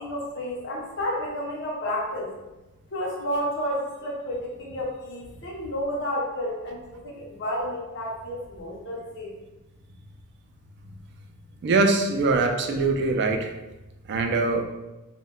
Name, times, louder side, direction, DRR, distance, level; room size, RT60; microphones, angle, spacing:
voice 1, 0.0-2.3 2.9-9.3, equal, 60° left, -3 dB, 0.7 m, -31 dB
voice 2, 11.6-13.5 14.1-14.6, right 3 dB, 55° right, 4 dB, 0.3 m, -22 dB
2.1 x 2.1 x 3.6 m, 1.0 s
head